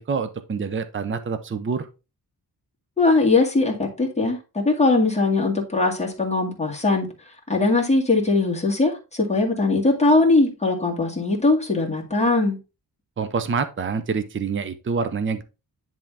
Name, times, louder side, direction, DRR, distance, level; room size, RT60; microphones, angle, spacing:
voice 1, 0.0-1.9 13.2-15.4, right 5 dB, 30° right, 0.6 m, -26 dB
voice 2, 3.0-7.1 7.5-12.6, left 3 dB, 15° left, 2.0 m, -20 dB
10.0 x 3.6 x 3.5 m
wide cardioid pair, 150°, 41 cm